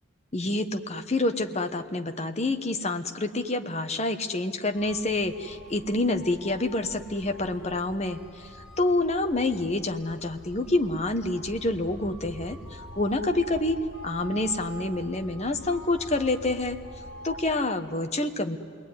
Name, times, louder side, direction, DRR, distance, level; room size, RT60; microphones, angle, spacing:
voice 1, 0.3-8.5 8.8-16.8 17.2-18.6, left 2 dB, 30° left, 6 dB, 1.2 m, -27 dB
sound 1, 4.7-17.5, equal, 60° left, 3.5 m, -44 dB
28.0 x 21.0 x 9.7 m, 2.3 s
head